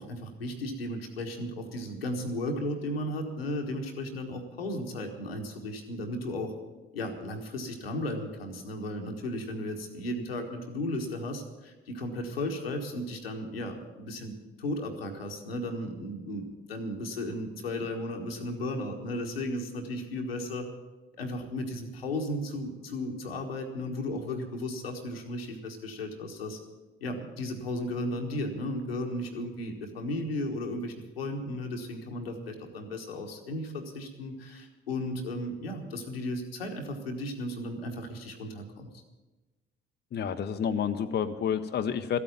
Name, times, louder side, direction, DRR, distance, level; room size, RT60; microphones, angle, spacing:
voice 1, 0.0-6.5 6.9-20.7 21.2-26.6 27.0-38.9, left 1 dB, 80° left, 3 dB, 1.4 m, -35 dB
voice 2, 40.1-42.2, left 8 dB, 35° left, 8 dB, 0.8 m, -29 dB
14.5 x 8.5 x 9.2 m, 1.2 s
figure-of-eight pair, 45°, 29 cm